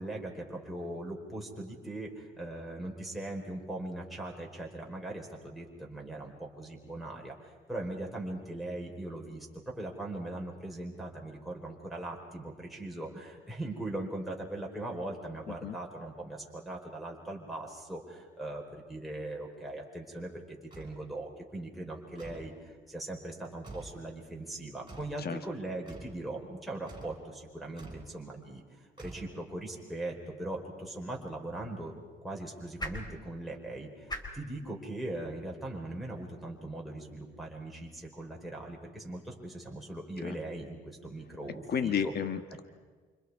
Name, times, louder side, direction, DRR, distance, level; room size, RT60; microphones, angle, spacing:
voice 1, 0.0-28.6 29.0-31.9 32.2-42.1 42.5-42.6, right 1 dB, ahead, -2 dB, 4.5 m, -40 dB
sound 1, 20.7-21.0 22.2-22.6 23.6-24.0 24.9-25.2 25.9-26.2 26.9-27.2 27.8-28.1 29.0-29.6, right 3 dB, 25° right, 5.9 m, -48 dB
sound 2, 31.0-37.2, left 1 dB, 20° left, 4.5 m, -47 dB
voice 2, 41.7-42.6, left 7 dB, 50° left, 9 dB, 1.5 m, -32 dB
29.5 x 27.0 x 4.9 m, 1.5 s
cardioid pair, 90°, 20 cm